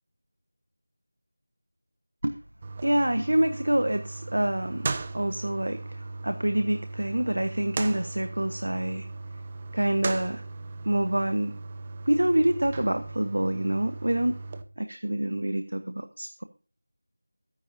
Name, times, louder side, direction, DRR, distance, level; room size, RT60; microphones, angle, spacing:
sound 1, 2.6-14.6, right 3 dB, 25° right, 0.9 m, -37 dB
voice 1, 2.8-9.1 9.7-10.4 10.8-11.5 12.1-14.3 14.8-16.4, right 1 dB, 75° right, 8 dB, 1.3 m, -26 dB
23.0 x 10.5 x 2.7 m, 0.36 s
figure-of-eight pair, 170°, 0 cm